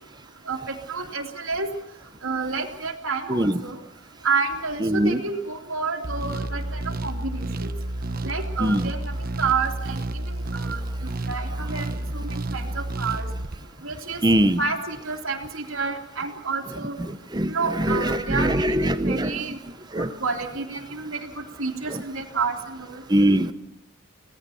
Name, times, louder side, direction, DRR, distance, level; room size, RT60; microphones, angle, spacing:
voice 1, 0.9-1.7 2.2-3.8 4.2-7.7 8.2-9.0 9.4-10.0 10.5-10.8 11.3-11.8 12.1-13.2 13.8-14.2 14.6-17.0 17.5-19.6 20.0-22.5 22.9-23.0, right 4 dB, 85° right, 1 dB, 2.9 m, -29 dB
voice 2, 3.3-3.6 4.8-5.2 8.6-8.9 14.2-14.6 17.0-19.4 19.9-20.1 21.9-22.0 23.1-23.5, right 1 dB, 20° right, 11 dB, 1.1 m, -22 dB
sound 1, 6.0-13.6, right 1 dB, 45° right, 1.1 m, -30 dB
25.5 x 18.0 x 7.1 m, 0.85 s
head